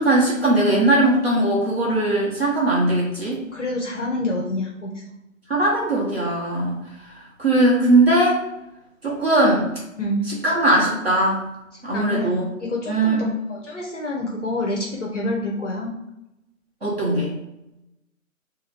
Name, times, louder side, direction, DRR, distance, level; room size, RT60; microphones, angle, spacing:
voice 1, 0.0-3.4 5.5-6.8 7.1-8.4 9.0-9.6 10.3-11.4 11.8-12.5 12.9-13.4 16.8-17.3, right 1 dB, 45° right, -6 dB, 1.0 m, -19 dB
voice 2, 3.5-5.0 10.0-10.2 11.9-15.9, left 1 dB, 60° left, -1 dB, 0.6 m, -27 dB
2.6 x 2.4 x 3.2 m, 0.89 s
figure-of-eight pair, 175°, 42 cm